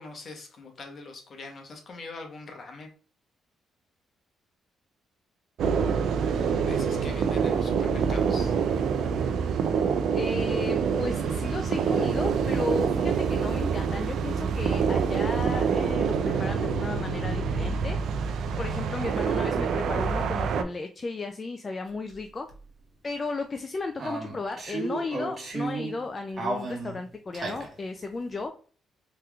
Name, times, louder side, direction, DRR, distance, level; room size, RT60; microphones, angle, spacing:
voice 1, 0.0-2.9 6.1-8.5, left 3 dB, 50° left, 3 dB, 0.9 m, -43 dB
sound 1, 5.6-20.6, right 6 dB, 70° right, 0.3 m, -26 dB
voice 2, 10.1-18.0 18.6-22.5 23.0-28.5, left 3 dB, 30° left, 6 dB, 0.3 m, -34 dB
sound 2, 22.1-22.2 22.5-22.6 24.0-26.0 26.4-27.7, right 3 dB, 45° right, 1.1 m, -33 dB
3.3 x 2.9 x 2.3 m, 0.41 s
cardioid pair, 90°, 0 cm